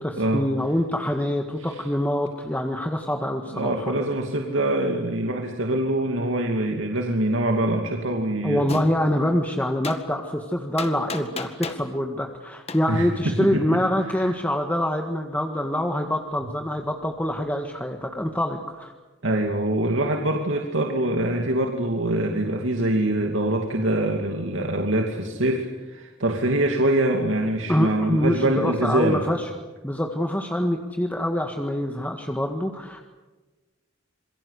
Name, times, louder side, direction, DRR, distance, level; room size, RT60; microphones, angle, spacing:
voice 1, 0.0-3.9 8.4-18.9 27.7-29.5 29.8-33.0, left 1 dB, 10° left, 3 dB, 1.7 m, -25 dB
voice 2, 3.5-8.8 12.9-13.8 14.1-14.4 19.2-29.2, right 1 dB, 80° right, 3 dB, 2.5 m, -24 dB
Gunshot gunfire, 8.7-8.9 9.8-10.0 10.8-11.9 12.7-12.8, left 4 dB, 30° left, 1.9 m, -33 dB
27.5 x 23.0 x 8.3 m, 1.2 s
head